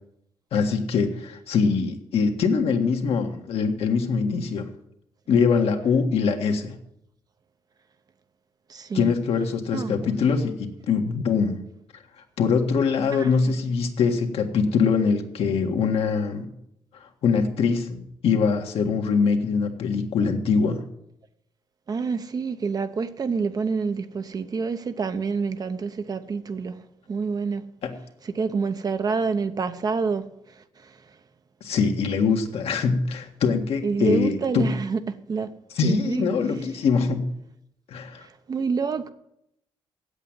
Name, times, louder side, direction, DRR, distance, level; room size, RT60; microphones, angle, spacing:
voice 1, 0.5-4.7 5.3-6.7 8.9-11.6 12.4-16.5 17.2-20.8 27.8-27.9 31.6-34.7 35.8-37.3 37.9-38.2, left 5 dB, 70° left, 1.7 m, -23 dB
voice 2, 8.7-9.1 9.7-9.9 13.1-13.3 21.9-27.7 28.3-30.3 30.6-30.7 33.8-35.5 35.8-36.3 38.2-39.1, right 5 dB, 40° right, 0.8 m, -27 dB
8.4 x 8.2 x 9.0 m
cardioid pair, 105°, 10 cm